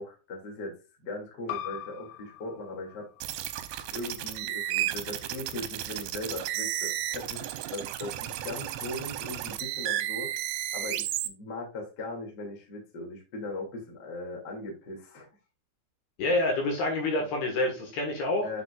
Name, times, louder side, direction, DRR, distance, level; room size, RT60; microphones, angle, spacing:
voice 1, 0.0-3.1 3.9-7.4 7.7-10.3 10.7-15.3 18.4-18.6, left 2 dB, 30° left, 0 dB, 2.1 m, -39 dB
sound 1, 1.5-6.7, left 11 dB, 80° left, 2.6 m, -44 dB
sound 2, 3.2-11.3, right 13 dB, 85° right, 2.9 m, -33 dB
voice 2, 16.2-18.5, left 2 dB, 65° left, 2 dB, 3.2 m, -27 dB
8.0 x 6.8 x 2.4 m, 0.31 s
omnidirectional pair, 5.5 m